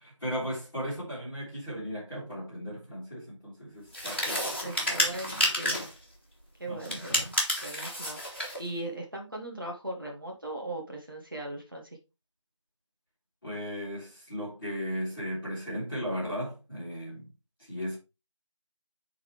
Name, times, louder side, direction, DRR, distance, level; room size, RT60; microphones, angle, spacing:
voice 1, 0.0-5.9 6.7-7.1 13.4-17.3 17.6-18.0, equal, 5° left, 1.9 m, -37 dB
sound 1, 3.9-6.0 6.8-8.6, left 1 dB, 20° left, 1.8 m, -30 dB
voice 2, 4.6-5.8 6.6-7.3 7.6-12.0, right 2 dB, 40° right, 1.5 m, -39 dB
9.4 x 4.0 x 3.2 m
figure-of-eight pair, 175°, 16 cm